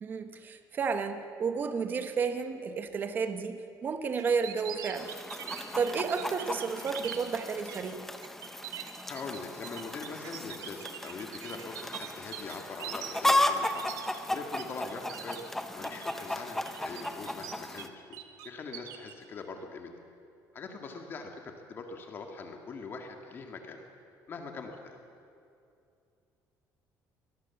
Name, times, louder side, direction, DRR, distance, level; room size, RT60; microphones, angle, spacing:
voice 1, 0.0-5.1 5.5-8.1, right 5 dB, 30° right, 8 dB, 1.1 m, -32 dB
sound 1, 4.2-7.2 7.7-7.9 8.2-14.6 14.9-15.4 15.8-16.2 16.6-17.8 18.1-19.1, right 10 dB, 65° right, 1.8 m, -43 dB
Chicken rooster, 4.9-17.9, left 1 dB, 5° left, 0.9 m, -35 dB
voice 2, 9.1-14.0 14.3-18.2 18.4-19.9 20.5-23.8 24.3-25.0, left 4 dB, 35° left, 4 dB, 1.9 m, -42 dB
24.0 x 20.0 x 7.1 m, 2.5 s
cardioid pair, 170°, 7 cm